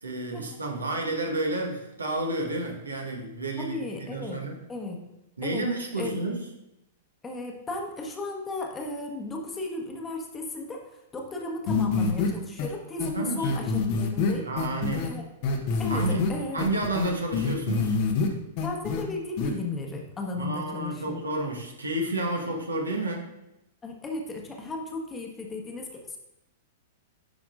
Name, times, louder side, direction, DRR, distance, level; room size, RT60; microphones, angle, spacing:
voice 1, 0.0-4.6 5.4-6.4 13.1-13.5 14.4-15.1 15.9-18.0 20.4-23.3, right 2 dB, 80° right, 0 dB, 1.4 m, -31 dB
voice 2, 3.6-4.4 4.7-5.0 5.4-5.7 6.0-6.2 7.2-10.8 11.1-14.5 15.0-15.2 15.8-16.7 18.6-21.2 23.8-26.2, left 2 dB, 15° left, 1 dB, 1.3 m, -35 dB
sound 1, 11.7-12.3 12.6-12.7 13.0-13.1 13.4-15.1 15.4-16.3 16.6-18.3 18.6-19.0 19.4-19.5, left 4 dB, 45° left, 1.1 m, -26 dB
10.5 x 5.8 x 2.5 m, 0.89 s
figure-of-eight pair, 100°, 0 cm